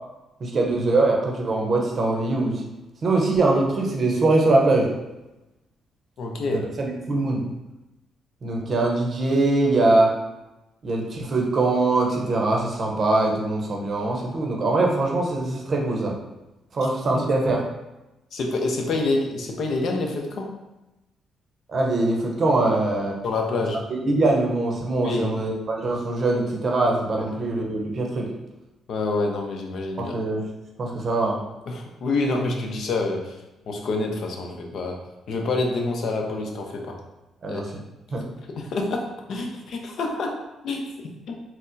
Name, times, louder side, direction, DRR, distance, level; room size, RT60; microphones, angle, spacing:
voice 1, 0.4-2.6 3.0-4.9 6.5-7.5 8.4-10.1 10.8-16.1 16.7-17.6 21.7-23.2 24.0-28.3 30.0-30.5 30.8-31.4 37.4-37.8 38.1-38.2, right 2 dB, 45° right, 0 dB, 0.7 m, -22 dB
voice 2, 6.2-6.6 17.1-17.2 18.3-20.5 23.2-23.8 25.0-25.3 27.2-27.3 28.9-30.2 31.7-33.3 33.7-35.0 35.3-37.0 37.5-37.6 38.5-40.4 40.6-41.3, left 3 dB, 65° left, 2 dB, 0.5 m, -27 dB
4.2 x 2.0 x 2.6 m, 0.99 s
cardioid pair, 90°, 0 cm